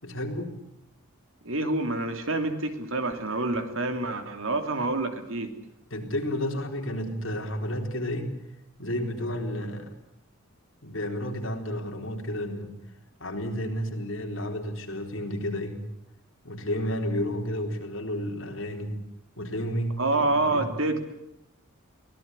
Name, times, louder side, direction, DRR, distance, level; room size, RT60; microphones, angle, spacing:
voice 1, 0.0-0.6 5.9-8.3 8.8-9.9 10.8-12.7 13.2-15.8 16.4-19.0 19.4-20.7, equal, 60° left, 3 dB, 4.1 m, -31 dB
voice 2, 1.4-5.5 20.0-21.0, right 2 dB, 65° right, 7 dB, 3.0 m, -27 dB
24.0 x 18.0 x 9.9 m, 0.82 s
head